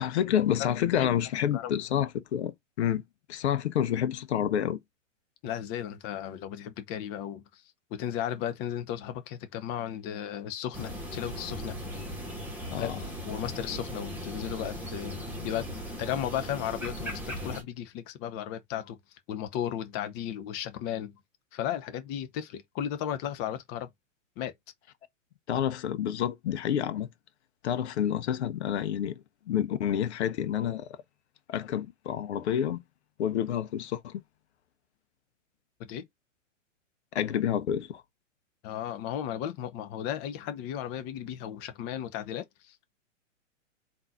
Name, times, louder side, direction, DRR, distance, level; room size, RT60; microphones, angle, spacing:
voice 1, 0.0-3.0 3.3-4.8 12.6-13.0 25.5-27.1 27.6-29.1 29.5-30.9 31.5-32.8 33.2-34.2 37.1-38.0, left 10 dB, 60° left, 0.8 m, -28 dB
voice 2, 5.4-7.6 7.9-11.8 12.7-12.9 13.2-15.7 16.0-19.0 19.3-21.2 21.5-23.9 24.4-24.5 35.8-36.0 38.6-42.9, left 10 dB, 25° left, 0.7 m, -35 dB
sound 1, 10.7-17.6, equal, 5° right, 1.4 m, -38 dB
3.8 x 2.7 x 4.1 m
hypercardioid pair, 120°, 39 cm